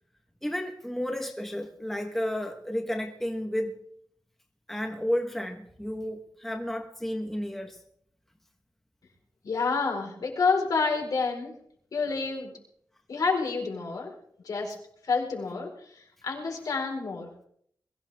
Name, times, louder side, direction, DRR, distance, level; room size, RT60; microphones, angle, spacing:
voice 1, 0.4-3.8 4.7-7.8, equal, 5° left, 3 dB, 1.4 m, -32 dB
voice 2, 9.4-11.5 11.9-12.5 13.1-14.1 14.4-14.7 15.0-15.7 16.0-17.5, left 4 dB, 60° left, 1 dB, 4.7 m, -28 dB
22.5 x 16.0 x 3.6 m, 0.65 s
wide cardioid pair, 150°, 7 cm